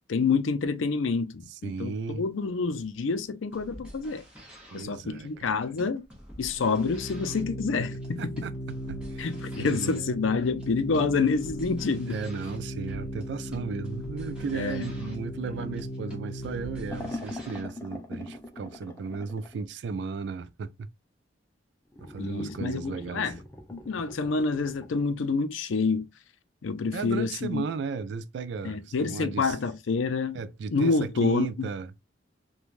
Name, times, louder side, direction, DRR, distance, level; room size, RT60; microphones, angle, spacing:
voice 1, 0.1-4.2 4.7-6.0 6.4-8.3 9.2-12.2 14.5-14.9 22.2-23.4 23.7-26.1 26.6-27.6 28.6-30.4 30.7-31.7, left 4 dB, 85° left, 0.5 m, -28 dB
voice 2, 1.6-2.2 4.7-5.9 8.2-8.5 8.9-9.3 9.6-10.1 12.1-20.9 22.0-23.3 26.9-29.6 30.3-31.9, right 5 dB, 60° right, 0.3 m, -35 dB
sound 1, 3.4-17.6, equal, 5° right, 0.9 m, -49 dB
Organ, 6.6-17.3, equal, 60° left, 0.9 m, -37 dB
sound 2, 16.9-19.6 21.9-25.0, left 1 dB, 15° left, 0.4 m, -42 dB
3.1 x 2.2 x 2.4 m
head